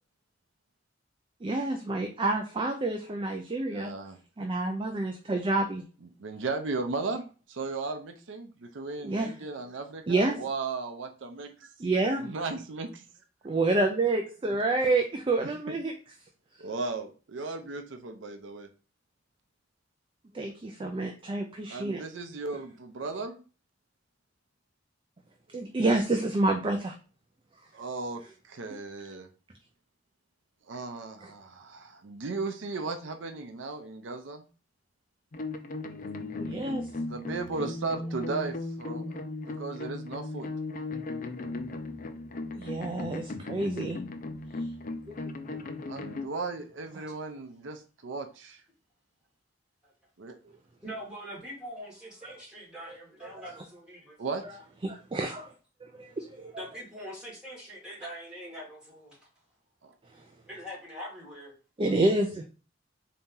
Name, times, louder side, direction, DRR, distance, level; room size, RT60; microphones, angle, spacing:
voice 1, 1.4-3.9 4.4-5.8 9.0-9.3 10.1-10.3 11.8-12.3 13.4-15.9 20.3-22.0 25.5-26.9 36.4-36.9 42.6-44.0 45.1-45.2 53.2-53.3 54.8-55.5 56.0-56.5 61.8-62.4, right 2 dB, 25° right, 4 dB, 0.5 m, -28 dB
voice 2, 3.7-4.2 6.2-11.7 12.2-13.0 15.4-15.5 16.6-18.7 21.7-23.4 27.7-29.3 30.7-34.5 37.0-39.3 39.6-40.5 45.9-48.6 50.2-50.6 54.2-54.6 59.8-59.9, right 3 dB, 80° right, 6 dB, 0.6 m, -36 dB
sound 1, 35.3-46.3, left 2 dB, 45° left, 0.5 m, -37 dB
voice 3, 50.8-54.2 56.6-59.2 60.5-61.5, equal, 5° right, -6 dB, 2.2 m, -43 dB
4.1 x 2.8 x 3.6 m, 0.36 s
head